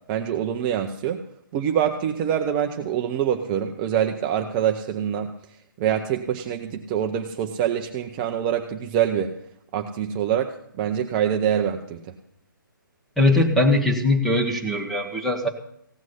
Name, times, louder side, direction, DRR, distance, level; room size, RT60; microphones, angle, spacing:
voice 1, 0.1-1.2 1.5-5.3 5.8-9.3 9.7-12.1, right 9 dB, 25° right, 4 dB, 0.7 m, -25 dB
voice 2, 13.2-15.5, left 2 dB, ahead, 2 dB, 1.3 m, -20 dB
16.0 x 6.2 x 9.8 m, 0.72 s
figure-of-eight pair, 145°, 11 cm